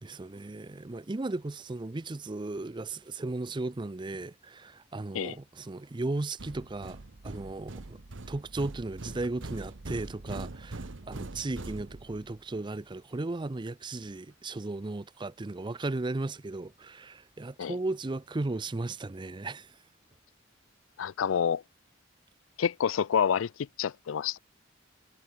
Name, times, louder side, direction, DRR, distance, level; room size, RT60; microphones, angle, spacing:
voice 1, 0.0-7.0 7.2-8.0 8.3-19.7, right 2 dB, 25° right, 0.5 m, -36 dB
sound 1, 6.4-12.4, right 2 dB, 70° right, 1.1 m, -42 dB
voice 2, 21.0-21.6 22.6-23.5 23.8-24.4, left 7 dB, 90° left, 0.4 m, -28 dB
head